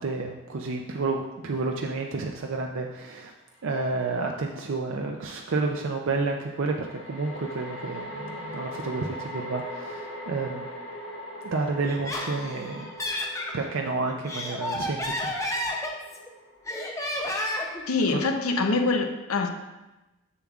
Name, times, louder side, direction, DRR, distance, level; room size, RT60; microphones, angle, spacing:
voice 1, 0.0-3.3 3.6-10.7 11.4-12.9 13.5-15.3 18.1-18.2, right 3 dB, 60° right, 2 dB, 0.4 m, -30 dB
sound 1, 3.6-3.7 6.5-17.9, equal, 65° left, 1.5 m, -41 dB
Laughter, 11.9-13.6 14.1-16.3 16.7-17.8, left 1 dB, 15° left, 0.5 m, -31 dB
voice 2, 17.9-19.5, left 3 dB, 80° left, 6 dB, 0.7 m, -24 dB
7.2 x 6.8 x 2.4 m, 1.1 s
head